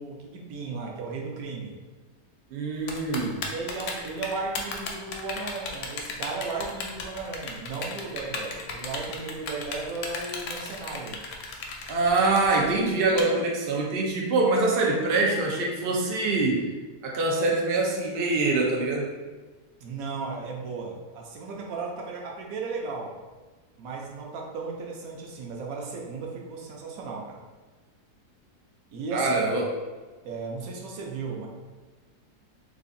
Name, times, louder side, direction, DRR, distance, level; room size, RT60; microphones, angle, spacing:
voice 1, 0.0-1.7 3.5-11.2 19.8-23.1 23.8-27.4 28.9-29.5 30.2-31.5, right 4 dB, 65° right, -1 dB, 0.9 m, -35 dB
voice 2, 2.5-3.4 11.9-16.7 17.0-19.1 29.1-29.7, right 3 dB, 85° right, -1 dB, 0.5 m, -24 dB
Typing, 2.9-13.2, left 4 dB, 75° left, 0.7 m, -35 dB
4.6 x 2.4 x 2.6 m, 1.4 s
omnidirectional pair, 1.8 m